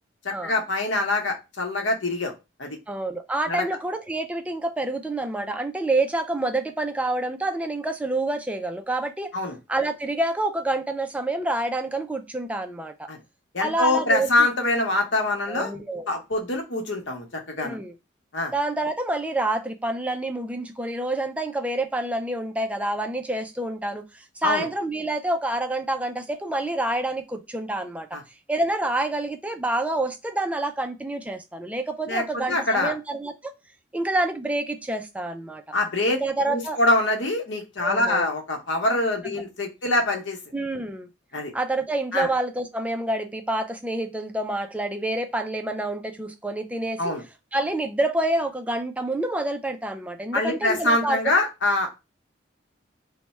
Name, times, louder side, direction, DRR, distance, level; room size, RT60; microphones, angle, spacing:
voice 1, 0.2-2.3 2.6-2.8 3.5-3.6 9.3-9.5 13.1-13.2 13.5-15.7 16.1-17.8 18.3-18.5 24.4-24.7 28.1-28.2 32.1-32.9 35.7-36.2 36.5-40.4 41.3-41.5 42.1-42.3 47.0-47.2 50.3-51.9, left 2 dB, 70° left, 0.9 m, -24 dB
voice 2, 2.9-9.4 9.7-13.1 13.6-14.5 15.5-16.1 17.6-17.9 18.5-28.2 28.5-33.5 33.9-35.6 36.2-36.8 37.8-38.3 39.2-39.4 40.5-41.1 41.5-47.2 47.5-51.2, right 2 dB, 5° right, 0.3 m, -27 dB
3.3 x 2.1 x 4.1 m
head